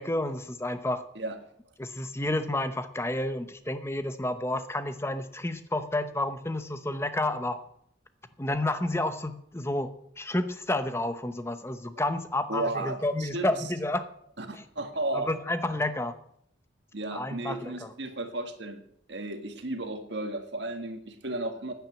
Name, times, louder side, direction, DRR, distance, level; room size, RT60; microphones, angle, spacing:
voice 1, 0.0-1.0 1.8-7.6 8.4-14.0 14.5-14.6 15.1-16.1 17.1-17.9, left 1 dB, 15° left, 10 dB, 0.8 m, -30 dB
voice 2, 12.5-13.5 14.4-15.3 16.9-18.8 19.1-21.7, right 2 dB, 65° right, 6 dB, 1.8 m, -34 dB
10.5 x 9.0 x 7.9 m, 0.68 s
head